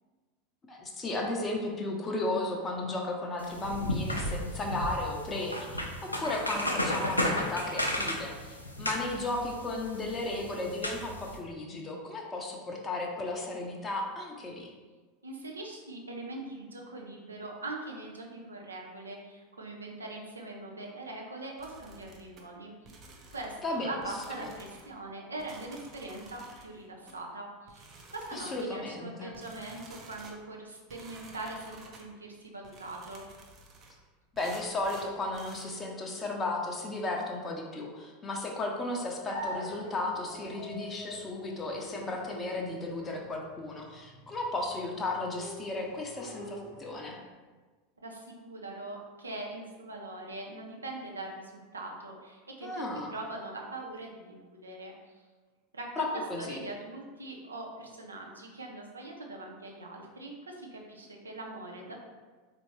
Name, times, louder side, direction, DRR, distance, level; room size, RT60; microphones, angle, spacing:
voice 1, 0.7-14.7 23.6-24.0 24.4-24.5 28.3-29.3 34.3-47.2 52.6-53.1 56.0-56.6, left 2 dB, 20° left, 0 dB, 0.6 m, -34 dB
sound 1, 3.4-11.4, left 1 dB, 85° left, 0.4 m, -34 dB
voice 2, 15.2-22.7 23.0-33.2 48.0-54.9 55.7-56.1 56.4-61.9, right 2 dB, 80° right, 0 dB, 0.6 m, -42 dB
sound 2, 21.6-22.4 22.9-23.7 24.0-24.9 25.4-26.7 27.1-27.2 27.7-28.7 29.3-30.4 30.9-32.1 32.6-34.0 34.4-35.7, right 3 dB, 35° right, 0.6 m, -52 dB
sound 3, 39.3-47.3, equal, 65° left, 0.8 m, -45 dB
4.3 x 2.7 x 3.1 m, 1.4 s
figure-of-eight pair, 80°, 0 cm